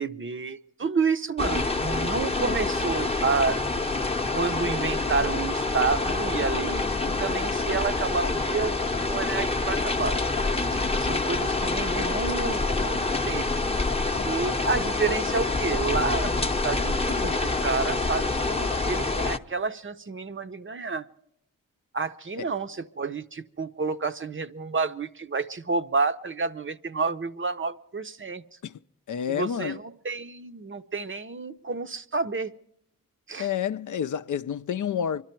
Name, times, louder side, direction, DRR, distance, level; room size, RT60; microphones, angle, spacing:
voice 1, 0.0-3.6 4.3-6.9 7.2-10.1 10.7-13.0 13.3-13.5 14.2-21.0 21.9-28.4 29.3-32.5 33.3-33.5, right 4 dB, 35° right, 0.6 m, -29 dB
sound 1, 1.4-19.4, left 3 dB, 15° left, 0.8 m, -26 dB
voice 2, 29.1-29.8 33.4-35.2, left 8 dB, 60° left, 0.5 m, -29 dB
25.0 x 12.0 x 4.4 m
cardioid pair, 60°, 35 cm